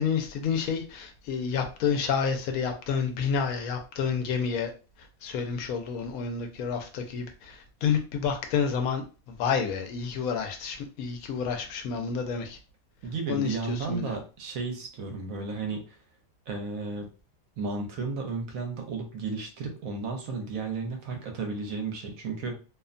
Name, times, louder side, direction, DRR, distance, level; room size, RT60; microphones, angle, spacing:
voice 1, 0.0-4.7 5.2-12.6 13.3-14.1, left 6 dB, 75° left, 4 dB, 1.0 m, -29 dB
voice 2, 13.0-16.0 16.5-17.1 17.6-22.6, right 4 dB, 75° right, 3 dB, 1.1 m, -33 dB
2.7 x 2.1 x 2.4 m, 0.34 s
omnidirectional pair, 1.5 m